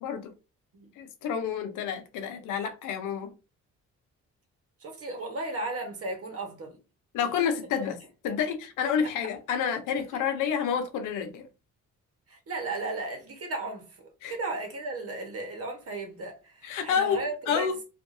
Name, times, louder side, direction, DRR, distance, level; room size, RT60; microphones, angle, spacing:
voice 1, 0.0-0.3 1.0-3.3 7.1-8.0 8.2-11.5 14.2-14.3 16.6-17.8, left 7 dB, 85° left, 0.6 m, -29 dB
voice 2, 4.8-6.8 7.8-7.9 10.1-10.2 12.3-13.9 14.3-17.7, right 2 dB, 50° right, 1.1 m, -35 dB
2.6 x 2.5 x 2.6 m
cardioid pair, 90°, 30 cm